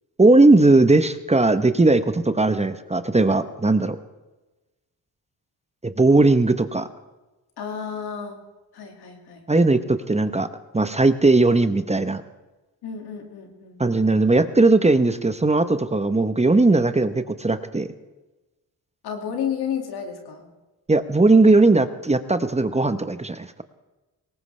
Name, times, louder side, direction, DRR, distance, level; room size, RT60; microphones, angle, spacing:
voice 1, 0.2-4.0 5.8-6.9 9.5-10.5 10.7-12.2 13.8-17.9 20.9-23.6, right 2 dB, 15° right, 11 dB, 0.9 m, -18 dB
voice 2, 7.6-8.4 8.7-9.5 12.8-13.8 19.0-20.5, left 7 dB, 90° left, 2 dB, 2.3 m, -31 dB
20.0 x 18.0 x 3.3 m, 1.1 s
cardioid pair, 55°, 37 cm